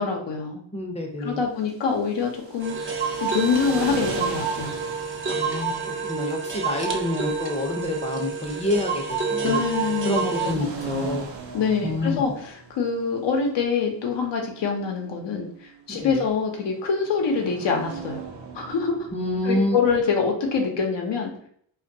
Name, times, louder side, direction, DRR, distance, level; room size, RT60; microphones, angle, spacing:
voice 1, 0.0-0.6 1.2-4.7 9.4-10.1 10.4-11.1 11.5-18.2 18.5-18.9 19.4-21.3, left 5 dB, 70° left, 2 dB, 0.7 m, -25 dB
voice 2, 0.7-1.4 5.3-9.6 10.0-11.3 11.8-12.2 15.9-16.2 19.1-19.8, left 1 dB, 15° left, 2 dB, 0.6 m, -28 dB
sound 1, 1.6-19.5, right 5 dB, 75° right, 0.7 m, -40 dB
sound 2, 2.6-10.5, right 5 dB, 30° right, 0.5 m, -28 dB
2.2 x 2.2 x 2.6 m, 0.62 s
cardioid pair, 55°, 45 cm